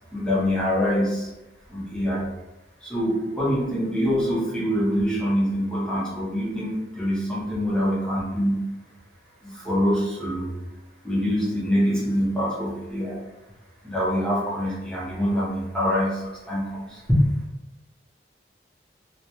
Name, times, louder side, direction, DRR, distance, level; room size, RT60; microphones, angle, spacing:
voice 1, 0.1-1.3 1.7-2.3 2.8-8.7 9.4-10.6 11.0-13.2 13.8-17.2, equal, 5° left, -7 dB, 0.7 m, -25 dB
2.2 x 2.1 x 2.9 m, 0.97 s
head